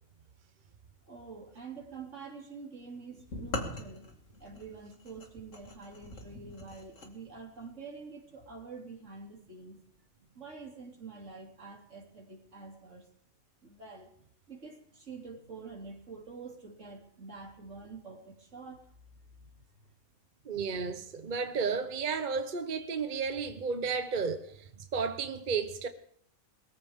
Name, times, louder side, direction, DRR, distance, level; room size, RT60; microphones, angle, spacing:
voice 1, 1.1-4.1 4.4-9.8 10.3-13.1 13.6-14.1 14.5-18.9 19.4-19.5, right 4 dB, 60° right, 3.3 m, -47 dB
sound 1, 3.3-7.1, left 2 dB, 60° left, 2.4 m, -41 dB
voice 2, 20.5-25.9, right 5 dB, 40° right, 0.9 m, -33 dB
21.5 x 14.5 x 3.6 m
omnidirectional pair, 1.5 m